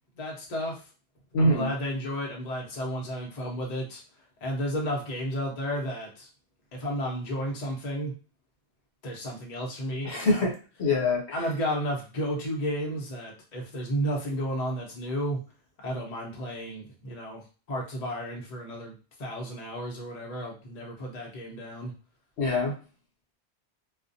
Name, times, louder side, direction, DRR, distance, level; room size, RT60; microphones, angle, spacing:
voice 1, 0.2-0.8 1.4-4.0 4.4-6.3 6.7-8.1 9.0-10.4 11.3-15.4 15.8-17.4 17.7-18.9 19.2-21.9, equal, 40° left, -1 dB, 0.7 m, -32 dB
voice 2, 1.3-1.7 10.0-11.4 22.4-22.7, left 2 dB, 75° left, -1 dB, 1.1 m, -25 dB
2.4 x 2.1 x 2.6 m, 0.35 s
omnidirectional pair, 1.2 m